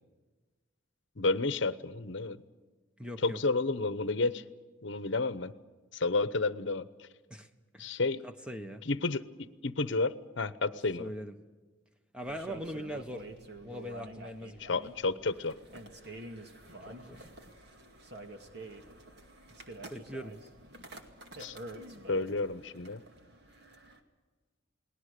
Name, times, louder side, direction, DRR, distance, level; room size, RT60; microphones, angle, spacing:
voice 1, 1.2-2.4 3.2-4.4 4.8-5.5 5.9-7.1 7.8-8.2 8.8-11.1 14.6-15.6 21.4-21.6 22.1-23.0, left 3 dB, 65° left, 14 dB, 0.9 m, -31 dB
voice 2, 3.0-3.4 7.3-7.5 7.7-8.8 11.0-11.3 12.1-13.3 13.6-14.9 16.9-17.2 19.9-20.3, equal, 5° right, 6 dB, 1.2 m, -41 dB
sound 1, 12.2-24.0, right 1 dB, 55° right, 2.2 m, -48 dB
29.5 x 19.5 x 6.7 m, 1.3 s
head